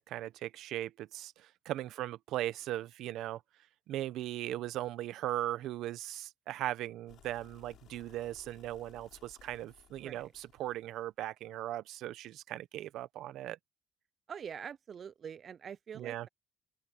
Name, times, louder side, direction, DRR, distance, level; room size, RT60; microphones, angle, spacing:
voice 1, 0.0-3.4 3.9-13.6 16.0-16.3, right 14 dB, 80° right, 0.8 m, -38 dB
sound 1, 7.1-11.1, left 11 dB, 60° left, 6.0 m, -61 dB
voice 2, 10.0-10.3 14.3-16.3, right 7 dB, 35° right, 0.3 m, -45 dB
open air
cardioid pair, 170°, 0 cm